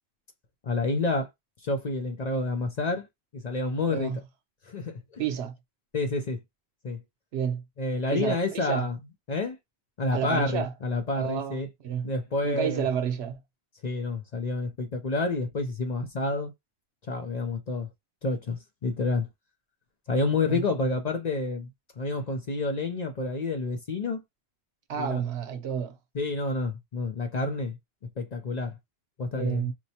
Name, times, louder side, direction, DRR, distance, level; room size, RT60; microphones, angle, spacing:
voice 1, 0.6-1.3 1.6-3.1 3.3-4.1 4.7-5.2 5.9-6.4 6.8-7.0 7.8-9.0 9.3-9.6 10.0-11.7 12.0-12.9 13.8-16.5 17.1-17.9 18.2-19.3 20.1-21.7 22.0-24.2 24.9-25.2 26.1-27.8 28.2-28.8 29.2-29.7, left 3 dB, 45° left, 0.6 m, -29 dB
voice 2, 3.9-4.2 5.2-5.6 7.3-7.6 8.1-8.9 10.1-10.7 11.2-12.1 12.4-13.4 20.5-20.6 24.9-26.0 29.3-29.7, right 8 dB, 75° right, 0.9 m, -30 dB
4.5 x 2.1 x 2.7 m
omnidirectional pair, 1.1 m